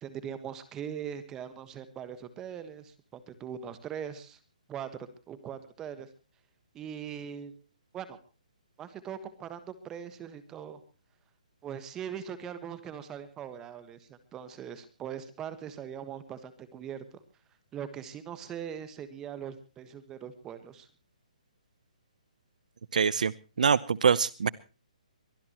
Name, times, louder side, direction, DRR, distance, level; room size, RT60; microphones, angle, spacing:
voice 1, 0.0-4.4 4.7-6.1 6.7-7.5 7.9-8.2 8.8-10.8 11.6-17.2 17.7-20.9, right 8 dB, 10° right, 13 dB, 1.4 m, -41 dB
voice 2, 22.9-23.3 23.6-24.5, right 6 dB, 70° right, 20 dB, 0.8 m, -24 dB
23.5 x 18.0 x 3.0 m, 0.34 s
hypercardioid pair, 170°, 4 cm